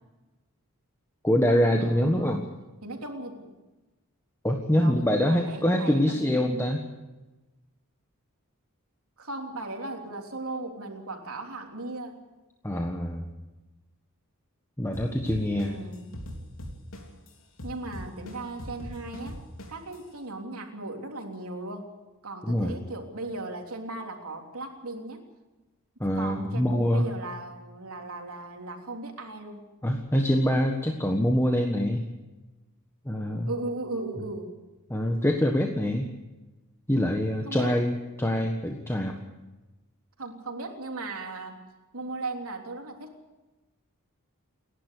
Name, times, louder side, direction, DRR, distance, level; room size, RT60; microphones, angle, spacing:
voice 1, 1.2-2.4 4.4-6.9 12.6-13.3 14.8-15.8 22.4-22.7 26.0-27.1 29.8-32.1 33.0-33.5 34.9-36.1 36.9-39.1, equal, 10° left, 2 dB, 1.4 m, -25 dB
voice 2, 1.8-2.4 2.8-3.5 4.8-6.7 9.2-12.2 15.5-16.1 17.6-19.4 19.7-21.9 22.2-25.2 26.1-29.7 33.5-34.5 37.4-37.7 40.2-41.6 41.9-43.1, right 2 dB, 75° right, 2 dB, 3.4 m, -37 dB
sound 1, 14.9-17.3 17.6-19.9, left 1 dB, 65° left, 3.8 m, -39 dB
29.0 x 11.5 x 8.3 m, 1.1 s
head